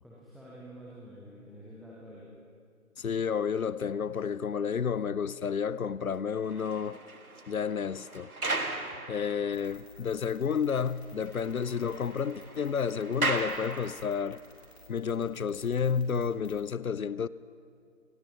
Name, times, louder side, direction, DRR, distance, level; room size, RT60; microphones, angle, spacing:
voice 1, 0.0-2.3, equal, ahead, 0.7 m, -48 dB
voice 2, 3.0-7.0 7.5-8.3 9.1-14.4 14.9-17.3, left 6 dB, 75° left, 0.5 m, -31 dB
sound 1, 6.3-9.8 10.3-10.4 10.8-10.9 11.1-14.4, right 2 dB, 80° right, 1.3 m, -37 dB
sound 2, 9.5-16.7, left 2 dB, 45° left, 3.3 m, -55 dB
26.5 x 15.0 x 3.0 m
figure-of-eight pair, 165°, 43 cm